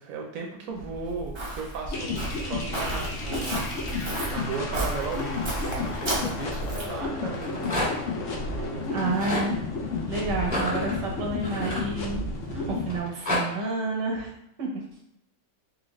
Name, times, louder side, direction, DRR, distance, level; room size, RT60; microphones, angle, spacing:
voice 1, 0.0-3.7 4.3-7.9 8.3-9.3, right 4 dB, 60° right, 0 dB, 1.0 m, -36 dB
Walk footsteps, 0.8-7.0, right 2 dB, 30° right, 0.5 m, -33 dB
sound 1, 1.9-13.0, left 3 dB, 60° left, 0.8 m, -32 dB
Rattle, 7.2-8.1 8.9-9.5 10.4-12.4 12.9-13.4, left 1 dB, 25° left, 1.4 m, -30 dB
voice 2, 8.9-9.6 10.1-14.3 14.6-14.7, right 3 dB, 85° right, 0 dB, 1.5 m, -30 dB
4.1 x 2.6 x 3.1 m, 0.76 s
omnidirectional pair, 1.8 m